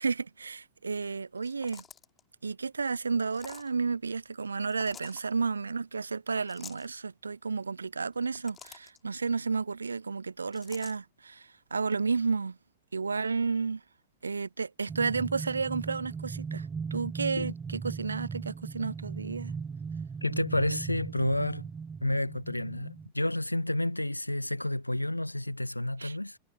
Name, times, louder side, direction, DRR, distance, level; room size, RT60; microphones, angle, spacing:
voice 1, 0.0-1.8 2.4-12.6 12.9-13.8 14.2-19.5 26.0-26.2, right 4 dB, 75° right, 0.3 m, -32 dB
sound 1, 1.4-2.2 3.3-3.7 4.7-5.2 6.5-6.9 8.1-9.0 10.5-11.0, left 7 dB, 20° left, 3.6 m, -49 dB
sound 2, 14.9-23.1, right 5 dB, 15° right, 0.5 m, -38 dB
voice 2, 20.2-21.7 22.0-26.4, left 1 dB, 90° left, 1.4 m, -30 dB
figure-of-eight pair, 95°, 0 cm